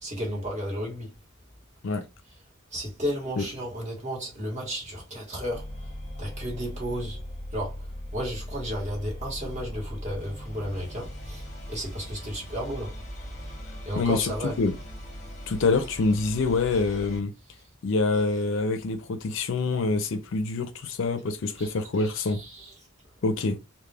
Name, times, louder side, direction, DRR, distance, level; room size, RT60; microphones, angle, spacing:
voice 1, 0.0-1.1 2.7-5.7 6.2-7.2 7.5-7.8 8.1-12.9 13.8-14.6 21.6-21.7 22.0-22.7, equal, 30° right, 1.1 m, -33 dB
sound 1, 5.5-17.2, equal, 35° left, 0.8 m, -39 dB
voice 2, 14.0-14.7 15.5-17.3 17.8-22.4 23.2-23.6, left 3 dB, 60° left, 0.4 m, -26 dB
2.3 x 2.1 x 3.2 m
head